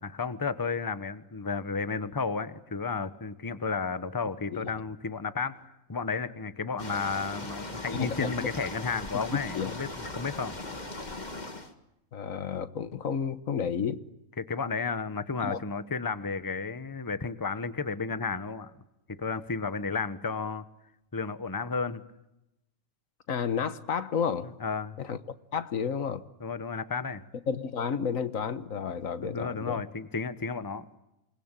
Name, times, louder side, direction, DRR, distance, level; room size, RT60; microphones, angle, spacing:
voice 1, 0.0-9.9 10.2-10.6 14.4-18.7 19.1-20.7 21.1-22.0 24.6-25.0 26.4-27.2 29.2-30.8, left 4 dB, 15° left, 1.0 m, -32 dB
sound 1, 6.8-11.7, left 2 dB, 30° left, 2.2 m, -39 dB
voice 2, 7.9-8.5 9.3-9.7 12.1-14.0 15.4-15.6 23.3-24.5 25.0-25.2 25.5-26.2 27.5-29.8, left 6 dB, 75° left, 1.6 m, -31 dB
28.0 x 20.5 x 9.0 m
omnidirectional pair, 1.4 m